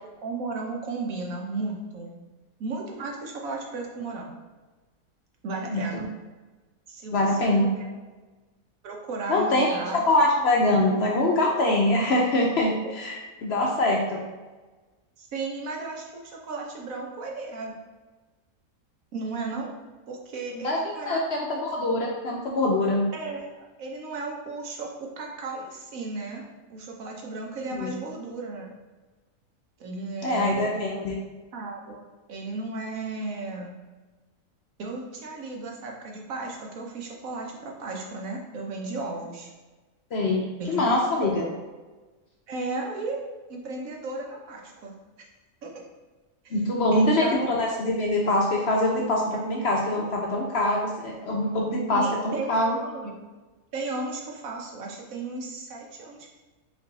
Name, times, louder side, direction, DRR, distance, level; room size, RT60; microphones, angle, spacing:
voice 1, 0.0-2.1 2.6-4.4 5.4-6.1 6.9-7.8 8.8-10.1 13.6-13.7 15.2-17.8 19.1-19.7 20.1-21.2 23.1-26.4 26.7-28.7 29.8-31.0 31.5-33.7 34.8-39.5 40.6-40.8 41.3-41.5 42.5-43.2 43.5-45.3 45.6-45.7 46.4-46.6 46.9-47.5 51.9-53.2 53.7-56.3, right 3 dB, 75° right, 0 dB, 1.2 m, -35 dB
voice 2, 5.7-6.0 7.1-7.7 9.3-9.8 10.1-14.0 20.5-23.1 27.8-27.9 30.2-31.2 40.1-41.5 46.5-52.7, left 1 dB, 60° left, -1 dB, 0.7 m, -24 dB
4.8 x 2.6 x 4.0 m, 1.3 s
omnidirectional pair, 1.5 m